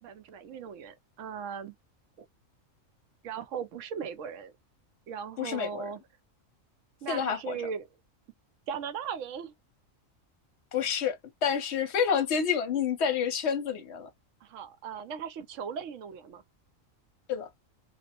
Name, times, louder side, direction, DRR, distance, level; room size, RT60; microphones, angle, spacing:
voice 1, 0.0-1.7 3.2-4.5 5.1-6.0 7.0-7.9 8.7-9.5 14.4-16.4, right 7 dB, 75° right, 0.9 m, -38 dB
voice 2, 5.4-5.9 7.1-7.6 10.7-14.1 17.3-17.5, left 7 dB, 60° left, 0.9 m, -29 dB
2.4 x 2.0 x 2.8 m
omnidirectional pair, 1.4 m